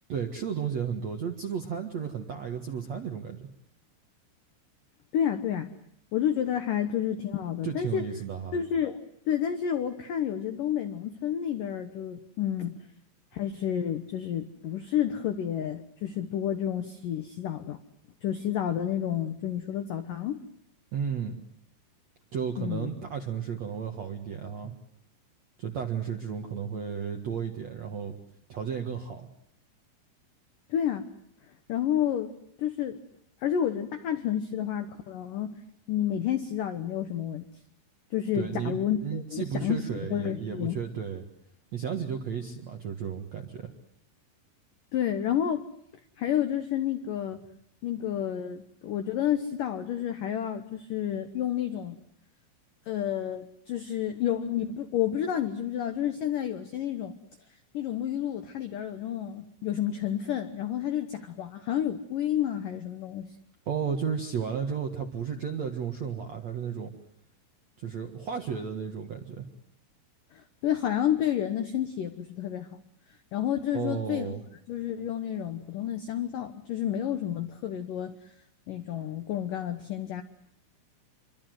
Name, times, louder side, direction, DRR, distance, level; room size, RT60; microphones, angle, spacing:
voice 1, 0.1-3.5 7.6-8.6 20.9-21.4 22.3-24.7 25.6-28.1 28.5-29.3 38.3-41.2 41.7-43.7 63.7-66.9 67.8-69.5 73.7-74.4, right 7 dB, 60° right, 4 dB, 1.7 m, -33 dB
voice 2, 5.1-5.7 6.1-8.0 8.5-12.8 13.3-17.8 18.2-20.4 22.6-22.9 30.7-31.1 31.7-32.3 32.6-33.0 33.4-35.6 35.9-37.5 38.1-40.8 44.9-45.7 46.2-47.4 47.8-52.0 52.9-57.1 57.7-63.3 70.3-72.8 73.3-74.4 74.7-78.1 78.7-80.2, left 10 dB, 75° left, 8 dB, 1.9 m, -30 dB
27.0 x 24.0 x 7.8 m, 0.70 s
omnidirectional pair, 5.6 m